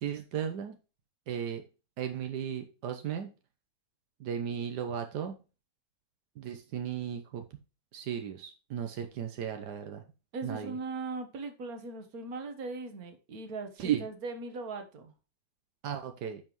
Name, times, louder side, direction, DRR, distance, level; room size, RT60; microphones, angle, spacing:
voice 1, 0.0-0.8 1.3-1.6 2.0-3.3 4.2-5.4 6.4-7.4 7.9-10.0 10.4-10.8 13.8-14.0 15.8-16.4, right 9 dB, 85° right, 6 dB, 1.5 m, -35 dB
voice 2, 10.3-15.1, right 3 dB, 65° right, 7 dB, 1.8 m, -39 dB
10.0 x 5.5 x 3.1 m, 0.32 s
omnidirectional pair, 1.7 m